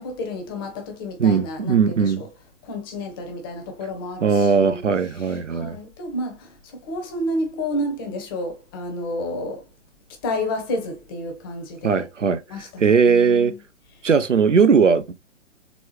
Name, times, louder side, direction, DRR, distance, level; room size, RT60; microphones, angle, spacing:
voice 1, 0.0-2.3 2.6-4.8 5.2-9.6 10.2-12.1 12.5-13.6, left 1 dB, 20° left, 0.7 m, -30 dB
voice 2, 1.2-2.3 4.2-5.8 11.8-13.5 14.0-15.1, right 5 dB, 75° right, 0.7 m, -19 dB
4.2 x 3.3 x 3.0 m
figure-of-eight pair, 125°, 37 cm